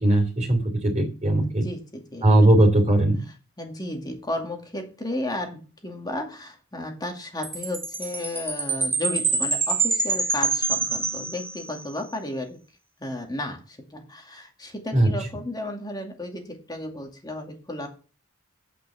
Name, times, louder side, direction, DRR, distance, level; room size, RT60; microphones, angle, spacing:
voice 1, 0.0-1.6 2.2-3.2 14.9-15.1, right 1 dB, 30° right, 1 dB, 2.9 m, -19 dB
voice 2, 1.6-2.5 3.6-12.6 13.0-17.9, left 1 dB, 20° left, 3 dB, 2.2 m, -33 dB
Chime, 7.4-11.9, right 4 dB, 10° right, 1.6 m, -26 dB
8.8 x 5.9 x 6.8 m, 0.35 s
head